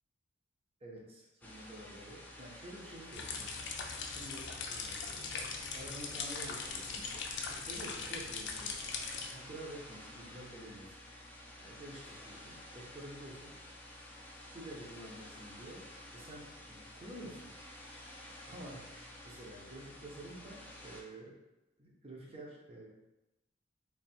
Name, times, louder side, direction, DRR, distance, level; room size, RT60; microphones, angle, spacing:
voice 1, 0.8-3.5 4.1-7.1 7.5-8.7 9.3-10.9 11.6-13.5 14.4-15.8 16.1-17.5 18.5-19.0 19.2-21.4 21.8-22.9, right 1 dB, 30° right, -3 dB, 0.8 m, -49 dB
sound 1, 1.4-21.0, left 1 dB, 10° left, 0.5 m, -51 dB
sound 2, 3.1-9.3, left 5 dB, 65° left, 0.5 m, -40 dB
3.4 x 2.3 x 4.2 m, 0.98 s
head